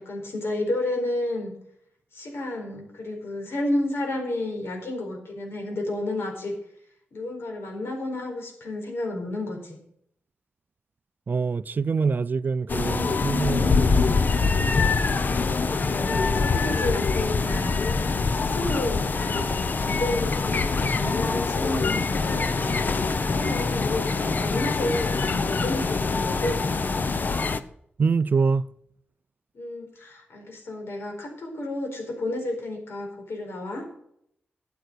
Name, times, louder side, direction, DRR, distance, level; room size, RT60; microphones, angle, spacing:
voice 1, 0.0-1.5 2.1-6.5 7.1-9.8 15.6-17.7 18.2-26.9 29.5-33.8, left 1 dB, 80° left, 4.5 m, -31 dB
voice 2, 11.3-14.1 28.0-28.7, right 5 dB, 50° right, 0.4 m, -25 dB
sound 1, 12.7-27.6, left 4 dB, 45° left, 0.8 m, -24 dB
12.5 x 7.9 x 6.6 m
wide cardioid pair, 95°, 4 cm